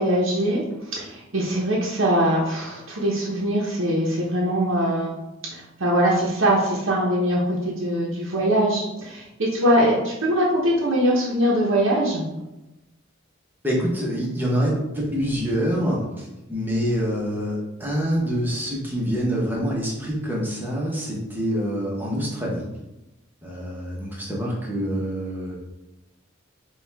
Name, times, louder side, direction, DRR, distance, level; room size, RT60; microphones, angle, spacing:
voice 1, 0.0-5.2 5.5-12.3, equal, 75° right, -4 dB, 0.8 m, -22 dB
voice 2, 13.6-22.7 23.4-25.6, equal, 10° right, -4 dB, 0.9 m, -26 dB
5.1 x 2.4 x 3.4 m, 0.96 s
head